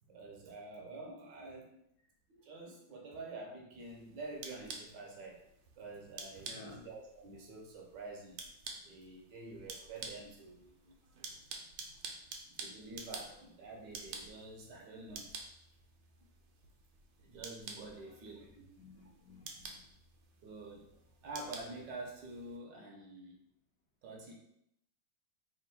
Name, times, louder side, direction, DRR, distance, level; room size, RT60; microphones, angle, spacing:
voice 1, 0.1-1.7 2.3-5.4 5.8-8.4 8.8-10.9 12.6-15.3 17.2-18.5 20.4-20.9 21.2-23.4 24.0-24.3, right 2 dB, 70° right, 0 dB, 1.3 m, -48 dB
sound 1, 3.8-22.6, right 4 dB, 90° right, 1.5 m, -50 dB
voice 2, 6.3-6.8 11.5-12.0 17.9-18.0 18.5-20.0, left 3 dB, 65° left, -3 dB, 1.2 m, -56 dB
3.6 x 2.5 x 4.0 m, 0.77 s
omnidirectional pair, 2.2 m